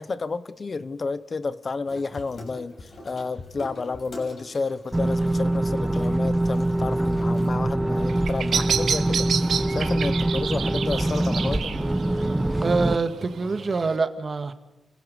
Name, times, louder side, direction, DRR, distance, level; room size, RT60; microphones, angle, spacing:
voice 1, 0.0-11.9, left 4 dB, 45° left, 15 dB, 0.9 m, -31 dB
Water tap faucet / Sink (filling or washing), 1.8-8.0, left 2 dB, 60° left, 6.2 m, -45 dB
sound 1, 4.9-13.0, right 1 dB, 15° right, 1.0 m, -24 dB
Bird vocalization bird call bird song, 8.0-14.0, right 7 dB, 75° right, 1.0 m, -30 dB
voice 2, 12.6-14.5, right 4 dB, 45° right, 9 dB, 1.8 m, -25 dB
30.0 x 15.5 x 6.9 m, 0.98 s
cardioid pair, 65°, 0 cm